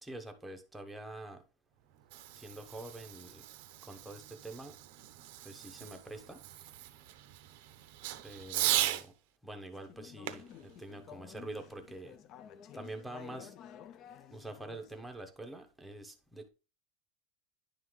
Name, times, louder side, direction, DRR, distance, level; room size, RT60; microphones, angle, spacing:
voice 1, 0.0-1.4 2.4-3.5 3.8-4.8 5.4-6.7 8.2-9.1 9.4-12.2 12.7-13.5 14.3-16.5, right 2 dB, 5° right, 0.7 m, -46 dB
Fireworks, 1.8-9.1 10.2-11.9, right 14 dB, 60° right, 0.5 m, -38 dB
Conversation / Chatter, 9.7-15.1, left 9 dB, 35° left, 0.3 m, -52 dB
10.0 x 3.7 x 3.1 m
supercardioid pair, 170°, 0 cm